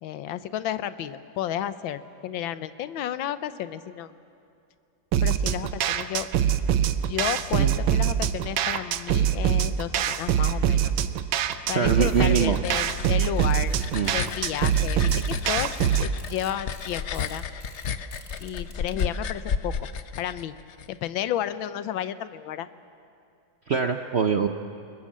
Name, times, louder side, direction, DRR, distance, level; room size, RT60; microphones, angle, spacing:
voice 1, 0.0-4.1 5.2-6.3 7.1-10.9 11.7-13.8 14.1-15.7 16.0-17.5 18.4-19.9 20.2-20.6 20.9-22.7, left 11 dB, 85° left, 13 dB, 1.6 m, -32 dB
sound 1, 5.1-16.1, right 9 dB, 85° right, 1.6 m, -24 dB
voice 2, 11.7-12.6 13.9-14.1 23.7-24.5, right 6 dB, 60° right, 6 dB, 0.7 m, -23 dB
sound 2, 11.9-20.9, left 6 dB, 60° left, 0.7 m, -33 dB
sound 3, 13.4-19.0, left 3 dB, 30° left, 2.2 m, -48 dB
28.5 x 20.5 x 7.5 m, 2.5 s
omnidirectional pair, 2.1 m